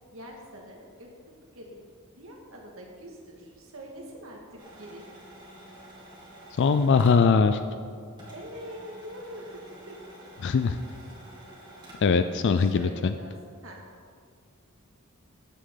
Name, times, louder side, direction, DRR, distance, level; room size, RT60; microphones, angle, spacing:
voice 1, 0.1-1.1 1.5-1.8 2.2-5.0 8.3-9.5 9.9-10.0 11.0-11.1 12.6-13.4 13.6-13.8, equal, 70° right, 0 dB, 2.0 m, -44 dB
sound 1, 4.6-7.9 8.2-12.2, right 1 dB, 20° right, 2.6 m, -49 dB
voice 2, 6.6-7.6 10.4-10.8 12.0-13.1, left 5 dB, 55° left, 10 dB, 0.4 m, -21 dB
13.5 x 8.3 x 3.9 m, 2.1 s
head